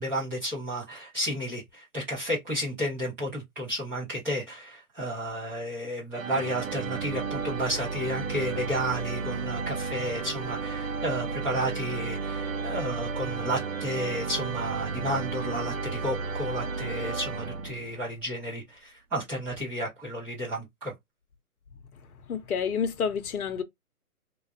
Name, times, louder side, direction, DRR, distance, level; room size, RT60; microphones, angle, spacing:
voice 1, 0.0-20.9, equal, 5° right, 0.7 m, -32 dB
sound 1, 6.1-18.1, right 4 dB, 60° right, 0.7 m, -33 dB
voice 2, 21.9-23.6, left 6 dB, 70° left, 0.8 m, -30 dB
3.3 x 2.4 x 2.3 m
hypercardioid pair, 155°, 46 cm